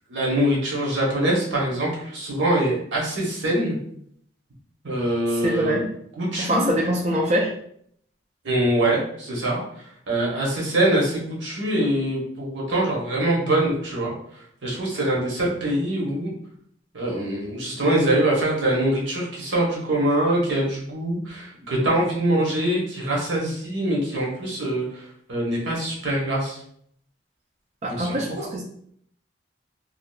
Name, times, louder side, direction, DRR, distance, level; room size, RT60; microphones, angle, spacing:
voice 1, 0.1-3.8 4.8-5.8 6.2-6.6 8.4-14.1 14.6-16.3 16.9-26.6 27.9-28.2, right 1 dB, 85° right, -4 dB, 0.9 m, -24 dB
voice 2, 5.3-5.9 6.4-7.5 27.8-28.6, equal, 35° right, -3 dB, 0.3 m, -24 dB
2.7 x 2.4 x 2.3 m, 0.67 s
head